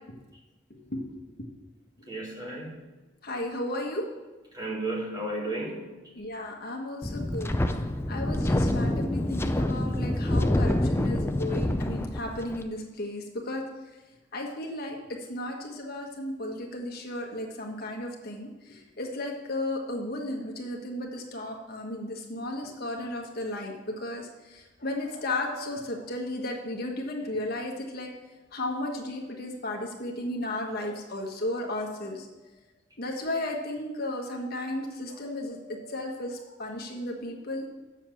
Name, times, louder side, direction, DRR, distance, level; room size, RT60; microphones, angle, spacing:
voice 1, 0.7-1.1 1.4-1.5 2.0-2.1 3.2-4.0 6.1-13.6 14.3-15.0 15.3-28.1 28.5-32.3 33.0-37.8, left 1 dB, 55° left, 1 dB, 1.5 m, -34 dB
voice 2, 2.1-2.8 4.5-5.9, right 2 dB, 20° right, -3 dB, 2.4 m, -33 dB
Wind, 7.0-12.6, left 1 dB, 15° left, 0.5 m, -27 dB
7.1 x 6.9 x 7.7 m, 1.1 s
head